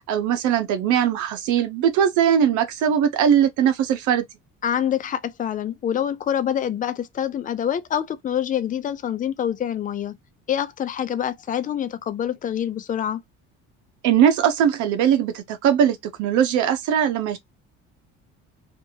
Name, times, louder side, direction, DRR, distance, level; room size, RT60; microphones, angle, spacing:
voice 1, 0.1-4.2 14.0-17.4, right 9 dB, 75° right, 0.8 m, -20 dB
voice 2, 4.6-10.1 10.5-13.2, left 9 dB, 30° left, 0.4 m, -26 dB
2.7 x 2.6 x 2.7 m
cardioid pair, 130°, 30 cm